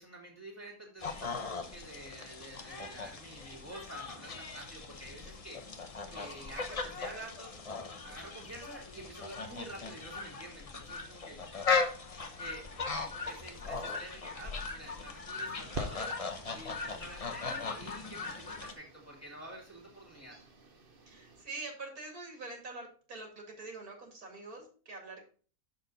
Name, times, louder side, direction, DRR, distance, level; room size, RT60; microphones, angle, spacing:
voice 1, 0.0-5.6 6.1-7.5 8.0-11.4 12.4-16.1 16.5-20.4, right 1 dB, 10° left, -4 dB, 2.1 m, -49 dB
sound 1, 1.0-18.7, left 4 dB, 35° left, 0.6 m, -38 dB
sound 2, 15.7-21.4, right 2 dB, 40° right, 1.0 m, -48 dB
voice 2, 21.1-25.3, right 3 dB, 70° right, 2 dB, 2.6 m, -45 dB
6.4 x 6.0 x 4.0 m, 0.41 s
omnidirectional pair, 1.6 m